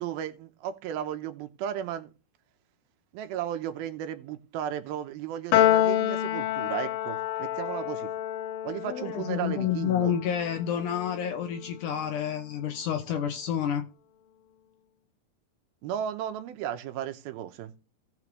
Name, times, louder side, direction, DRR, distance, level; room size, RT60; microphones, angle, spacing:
voice 1, 0.0-2.1 3.1-8.1 8.6-10.1 15.8-17.7, right 10 dB, 85° right, 2.7 m, -34 dB
Piano, 5.5-12.0, left 12 dB, 90° left, 2.7 m, -28 dB
voice 2, 8.8-13.9, left 9 dB, 70° left, 2.0 m, -29 dB
17.0 x 6.0 x 3.2 m
omnidirectional pair, 4.3 m